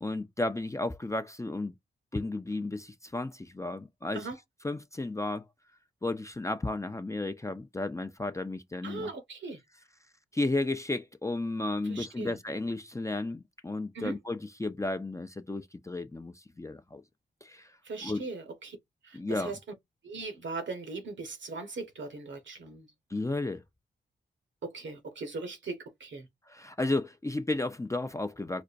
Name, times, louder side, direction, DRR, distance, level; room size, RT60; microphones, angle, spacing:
voice 1, 0.0-1.7 2.1-4.3 4.6-5.4 6.0-9.1 10.3-17.0 17.4-18.3 19.1-19.5 23.1-23.6 26.5-28.6, left 2 dB, 15° left, 0.5 m, -33 dB
voice 2, 8.8-9.6 11.9-12.4 13.9-14.2 17.8-18.8 19.0-19.6 20.0-22.9 24.6-26.3, right 3 dB, 70° right, 1.2 m, -39 dB
5.0 x 2.2 x 2.5 m
cardioid pair, 50°, 20 cm